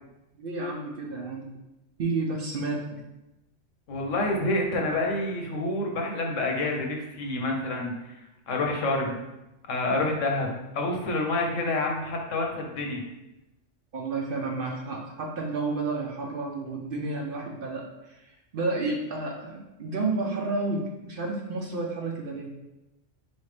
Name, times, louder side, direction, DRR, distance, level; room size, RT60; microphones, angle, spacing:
voice 1, 0.3-1.5 2.0-2.8 13.9-22.6, right 3 dB, 55° right, 0 dB, 0.7 m, -31 dB
voice 2, 3.9-7.9 8.5-9.2 9.7-13.0, left 2 dB, 85° left, 1 dB, 1.1 m, -28 dB
4.3 x 3.2 x 3.2 m, 0.96 s
omnidirectional pair, 1.3 m